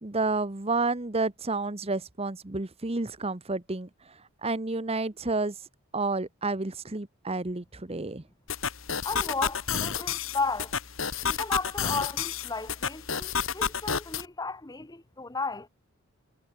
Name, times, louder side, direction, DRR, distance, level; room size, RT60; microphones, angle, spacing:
voice 1, 0.0-3.9 4.4-5.5 5.9-8.2, right 3 dB, 30° right, 1.1 m, -30 dB
sound 1, 8.5-14.2, left 7 dB, 65° left, 3.0 m, -31 dB
voice 2, 9.0-10.8 11.2-15.7, left 4 dB, 15° left, 0.9 m, -34 dB
head